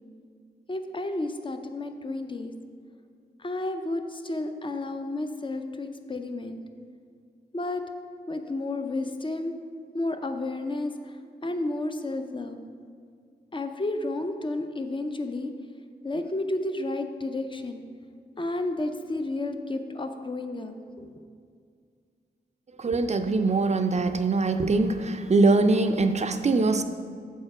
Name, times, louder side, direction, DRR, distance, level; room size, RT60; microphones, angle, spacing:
voice 1, 0.7-2.5 3.4-6.6 7.5-7.8 8.3-9.5 9.9-11.2 11.4-12.6 13.5-15.5 16.0-17.8 18.4-21.2, left 2 dB, 30° left, 6 dB, 0.5 m, -31 dB
voice 2, 22.8-26.8, right 3 dB, 40° right, 9 dB, 0.4 m, -22 dB
6.7 x 4.3 x 4.9 m, 2.2 s
wide cardioid pair, 75°, 18 cm